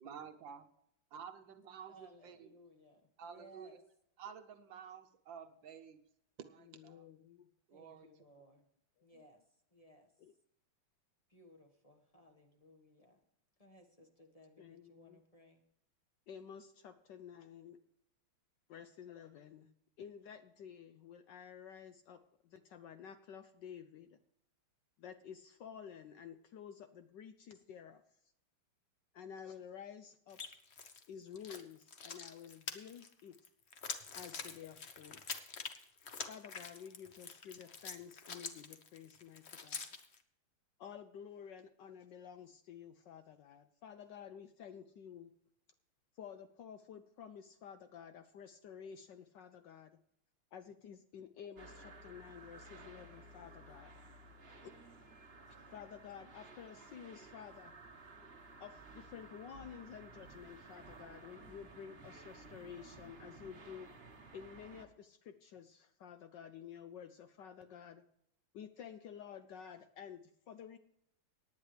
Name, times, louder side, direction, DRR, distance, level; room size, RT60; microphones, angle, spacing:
voice 1, 0.0-0.7 1.1-2.5 3.2-3.8 4.2-6.0 6.4-7.1 7.7-8.1, right 7 dB, 65° right, 8 dB, 1.4 m, -51 dB
voice 2, 1.9-3.8 7.7-8.7 9.0-9.4 9.7-10.1 11.3-13.2 13.6-15.6, equal, 20° left, 3 dB, 1.2 m, -61 dB
voice 3, 6.6-7.5 9.0-9.1 10.2-10.3 14.6-15.2 16.3-17.8 18.7-19.7 20.0-24.2 25.0-28.0 29.1-30.4 31.1-33.3 34.1-35.2 36.3-39.9 40.8-45.3 46.1-50.0 50.5-54.0 54.6-54.7 55.5-57.7 58.6-63.9 64.3-68.0 68.5-70.8, left 8 dB, 70° left, 10 dB, 1.1 m, -52 dB
sound 1, 30.3-31.1 31.3-40.2, left 5 dB, 45° left, 0.9 m, -46 dB
sound 2, 51.6-64.9, right 3 dB, 35° right, 1.3 m, -55 dB
18.0 x 9.8 x 3.3 m, 0.74 s
omnidirectional pair, 2.4 m